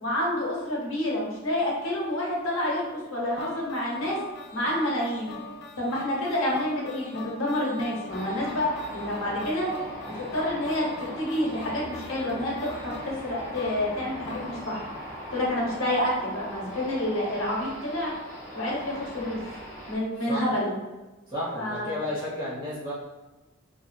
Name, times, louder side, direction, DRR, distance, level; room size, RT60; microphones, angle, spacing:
voice 1, 0.0-4.2 4.5-5.3 5.8-9.7 10.1-14.8 15.3-18.1 18.5-19.4 19.9-20.7 21.5-21.9, left 1 dB, 70° left, -3 dB, 0.8 m, -28 dB
sound 1, 3.4-15.6, left 3 dB, 55° left, 0.3 m, -43 dB
sound 2, 8.1-20.0, equal, 40° left, 1.1 m, -40 dB
voice 2, 21.3-22.9, left 1 dB, 25° right, -9 dB, 1.0 m, -32 dB
2.7 x 2.4 x 2.2 m, 1.1 s
head